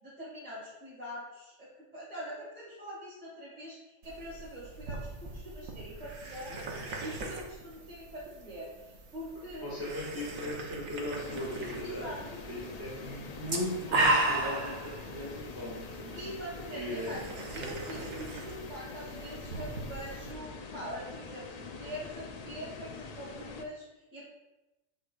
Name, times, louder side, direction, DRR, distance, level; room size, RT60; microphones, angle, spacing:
voice 1, 0.0-9.9 11.8-12.2 16.1-17.2 17.5-24.3, equal, 35° right, -11 dB, 2.4 m, -44 dB
sound 1, 4.0-20.3, right 2 dB, 80° right, 1.4 m, -37 dB
voice 2, 9.4-12.0 12.5-16.2 16.7-17.3, left 1 dB, 15° right, -6 dB, 1.8 m, -38 dB
sound 2, 11.1-23.7, left 5 dB, 65° left, 0.4 m, -45 dB
7.7 x 6.5 x 2.4 m, 1.0 s
omnidirectional pair, 1.3 m